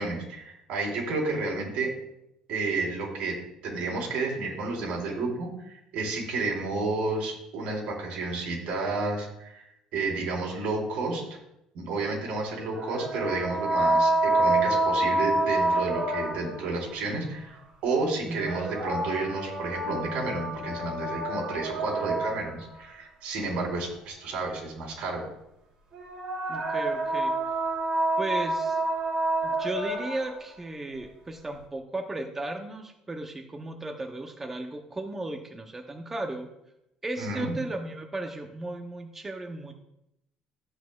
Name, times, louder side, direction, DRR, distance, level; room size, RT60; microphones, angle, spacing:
voice 1, 0.0-1.9 2.5-3.4 3.6-11.2 11.7-25.2 37.2-37.5, right 3 dB, 70° right, -2 dB, 4.0 m, -31 dB
sound 1, 12.7-16.7 18.2-22.7 25.9-30.4, right 2 dB, 45° right, 3.1 m, -28 dB
voice 2, 18.3-18.7 26.5-27.6 28.2-28.8 29.4-36.5 37.0-39.7, right 2 dB, 15° right, 3 dB, 0.6 m, -35 dB
14.0 x 8.3 x 2.3 m, 0.84 s
cardioid pair, 160°, 2 cm